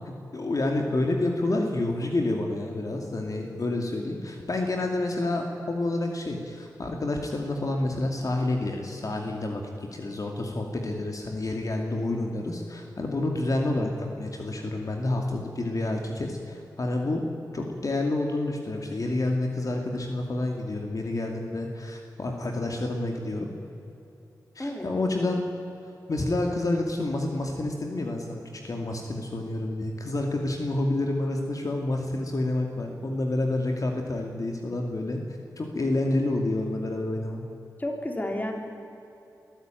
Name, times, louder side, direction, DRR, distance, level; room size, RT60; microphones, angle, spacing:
voice 1, 0.3-17.2 17.5-23.5 24.6-25.4 26.1-35.2 35.6-37.4, left 2 dB, 55° left, 2 dB, 2.5 m, -29 dB
voice 2, 37.8-38.5, left 1 dB, 25° left, 2 dB, 3.4 m, -31 dB
23.0 x 14.5 x 9.1 m, 2.9 s
wide cardioid pair, 70°, 7 cm